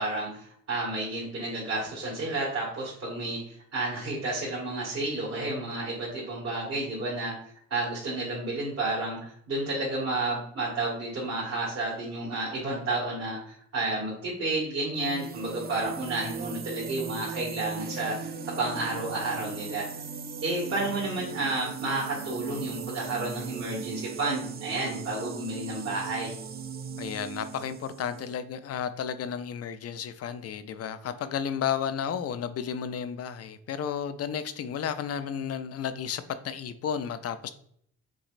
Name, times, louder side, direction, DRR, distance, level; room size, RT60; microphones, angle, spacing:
voice 1, 0.0-7.3 7.7-18.3 18.6-19.8 20.4-26.3, right 2 dB, 55° right, 1.9 m, -31 dB
sound 1, 14.9-28.4, right 6 dB, 30° right, 0.4 m, -38 dB
voice 2, 27.0-37.5, left 8 dB, 55° left, 0.5 m, -33 dB
6.0 x 3.1 x 2.5 m
cardioid pair, 90°, 30 cm